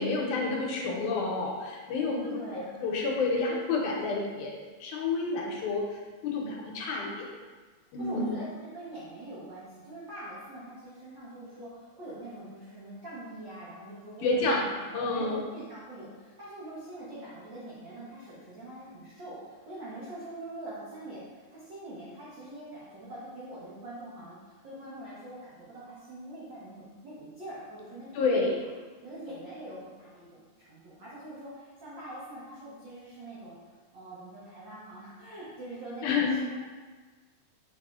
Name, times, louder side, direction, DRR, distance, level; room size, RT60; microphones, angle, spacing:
voice 1, 0.0-4.5 4.8-5.8 6.2-7.3 7.9-8.3 14.2-14.7 14.9-15.5 28.1-28.6 36.0-36.4, left 3 dB, 85° left, -1 dB, 2.1 m, -29 dB
voice 2, 2.0-2.7 8.0-24.4 24.6-28.6 29.0-33.6 33.9-36.6, right 1 dB, 85° right, -9 dB, 1.0 m, -44 dB
4.8 x 4.3 x 2.4 m, 1.4 s
omnidirectional pair, 3.5 m